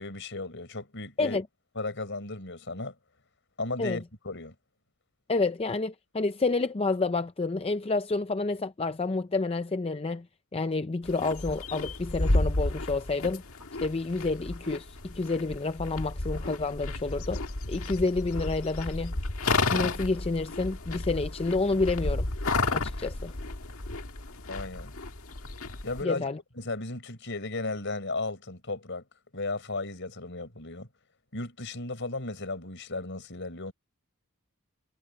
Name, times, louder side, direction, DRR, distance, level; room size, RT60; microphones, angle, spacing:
voice 1, 0.0-1.4 1.8-2.9 3.6-4.5 24.5-24.9 25.8-26.3 26.6-29.0 29.3-30.9 31.3-33.7, left 2 dB, 55° left, 6.0 m, -35 dB
voice 2, 5.3-10.3 10.5-13.4 13.8-17.4 17.7-19.1 19.7-22.3 22.7-23.3 26.0-26.4, left 3 dB, 25° left, 0.5 m, -29 dB
sound 1, 11.0-26.0, left 2 dB, 75° left, 1.8 m, -32 dB
head